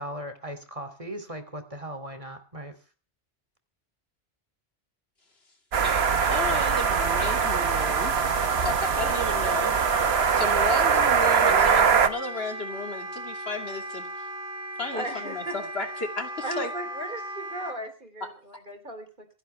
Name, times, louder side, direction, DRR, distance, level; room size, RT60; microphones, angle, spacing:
voice 1, 0.0-2.7, equal, 35° right, 8 dB, 2.7 m, -38 dB
sound 1, 5.7-12.1, right 6 dB, 80° right, 1.3 m, -22 dB
voice 2, 5.8-8.3 8.6-9.8 10.3-14.3 14.8-16.7 18.2-18.3, left 3 dB, 80° left, 5 dB, 2.8 m, -34 dB
Wind instrument woodwind instrument, 6.0-17.8, equal, 50° left, 3.1 m, -37 dB
voice 3, 14.9-15.5 16.4-19.3, right 1 dB, 55° right, 7 dB, 3.8 m, -36 dB
26.5 x 11.0 x 3.3 m, 0.37 s
omnidirectional pair, 1.0 m